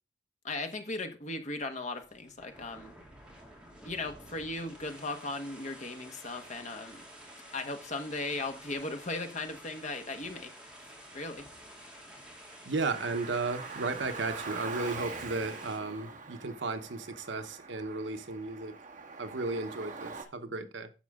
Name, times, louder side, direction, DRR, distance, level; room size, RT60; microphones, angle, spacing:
voice 1, 0.4-2.9 3.8-7.1 7.5-10.5 11.1-11.5, left 2 dB, 40° left, 1.5 m, -37 dB
sound 1, 1.9-15.8, equal, 5° right, 2.4 m, -51 dB
voice 2, 12.6-18.7 19.2-20.9, right 3 dB, 75° right, 1.0 m, -34 dB
Car, 12.8-20.2, right 4 dB, 45° right, 2.0 m, -43 dB
10.5 x 7.1 x 3.7 m
head